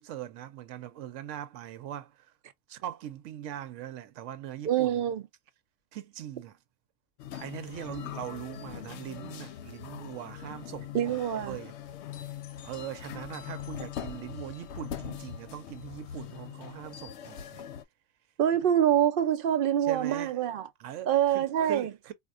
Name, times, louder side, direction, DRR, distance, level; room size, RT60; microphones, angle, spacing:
voice 1, 0.0-2.3 2.7-5.0 5.9-6.6 7.3-11.7 12.6-17.6 19.8-20.4 20.8-22.1, right 11 dB, 85° right, 1.0 m, -41 dB
voice 2, 4.7-5.2 10.9-11.6 18.4-20.7 21.1-21.9, right 10 dB, 60° right, 0.6 m, -25 dB
sound 1, 7.2-17.8, left 10 dB, 70° left, 0.8 m, -42 dB
4.4 x 2.3 x 2.4 m
omnidirectional pair, 1.2 m